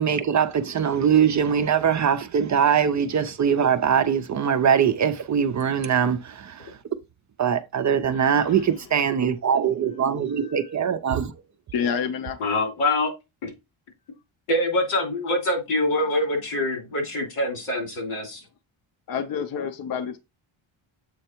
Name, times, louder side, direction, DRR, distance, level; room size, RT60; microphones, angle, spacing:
voice 1, 0.0-6.7 7.4-11.3, right 7 dB, 40° right, 0.4 m, -22 dB
voice 2, 8.1-8.6 9.0-9.1 10.4-10.7 11.7-12.4 19.1-20.2, left 7 dB, 45° left, 0.6 m, -29 dB
voice 3, 12.4-13.1 13.4-13.5 14.5-18.4, left 1 dB, 85° left, 2.9 m, -25 dB
7.7 x 3.2 x 4.4 m
wide cardioid pair, 170°, 49 cm